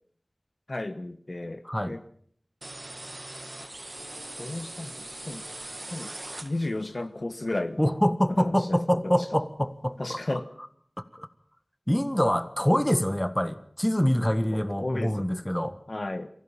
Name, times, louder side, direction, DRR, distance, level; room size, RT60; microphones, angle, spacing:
voice 1, 0.7-2.0 4.4-5.4 5.9-6.1 6.4-7.8 8.3-9.3 10.0-10.5 14.5-15.3 15.9-16.3, left 2 dB, 65° left, 10 dB, 1.3 m, -33 dB
sound 1, 2.6-6.9, right 1 dB, 50° right, 1.2 m, -41 dB
voice 2, 7.8-10.2 11.1-11.3 11.9-15.8, equal, 15° left, 11 dB, 1.5 m, -25 dB
23.5 x 15.5 x 7.3 m, 0.62 s
wide cardioid pair, 45°, 0 cm